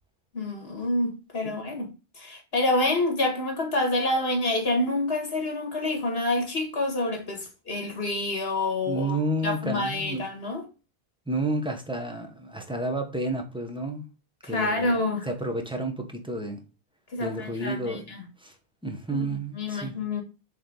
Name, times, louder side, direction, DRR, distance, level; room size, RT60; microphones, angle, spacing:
voice 1, 0.3-1.9 2.2-9.2 9.4-10.6 14.4-15.3 17.1-18.2 19.1-20.2, left 2 dB, 70° left, 2.0 m, -27 dB
voice 2, 1.4-1.8 8.9-10.2 11.3-14.0 14.4-14.9 15.2-16.6 17.2-18.5 18.8-19.9, right 2 dB, 5° right, 1.1 m, -31 dB
6.9 x 3.5 x 3.9 m
omnidirectional pair, 1.0 m